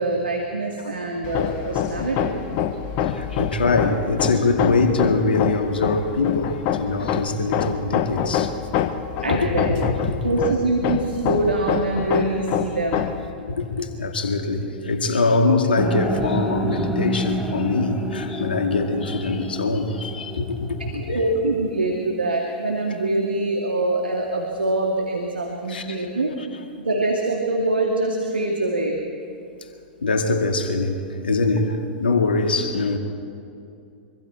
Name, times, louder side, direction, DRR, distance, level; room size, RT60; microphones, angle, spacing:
voice 1, 0.0-2.4 9.2-9.8 10.2-13.1 20.8-26.3 26.8-29.0, right 2 dB, 85° right, 2.3 m, -24 dB
Hammer, 1.2-13.3, left 9 dB, 40° left, 1.2 m, -26 dB
voice 2, 3.0-8.5 9.4-10.3 13.5-21.3 25.7-26.1 30.0-33.0, left 3 dB, 75° left, 2.1 m, -23 dB
sound 1, 15.8-21.9, equal, ahead, 1.5 m, -30 dB
24.5 x 24.0 x 4.5 m
figure-of-eight pair, 105°, 5 cm